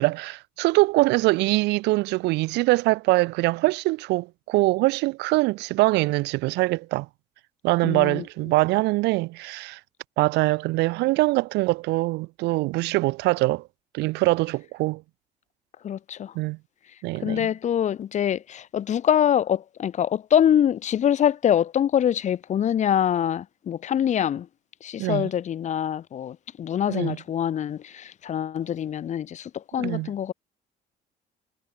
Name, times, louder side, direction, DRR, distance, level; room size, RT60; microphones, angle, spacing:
voice 1, 0.0-7.1 7.6-9.8 10.2-13.6 13.9-15.0 16.3-16.6 17.0-17.5 25.0-25.3 26.9-27.2 29.8-30.1, right 22 dB, 85° right, 0.6 m, -23 dB
voice 2, 7.8-8.2 15.8-16.3 17.2-24.5 24.8-30.3, left 9 dB, 45° left, 0.8 m, -24 dB
cardioid pair, 110°, 17 cm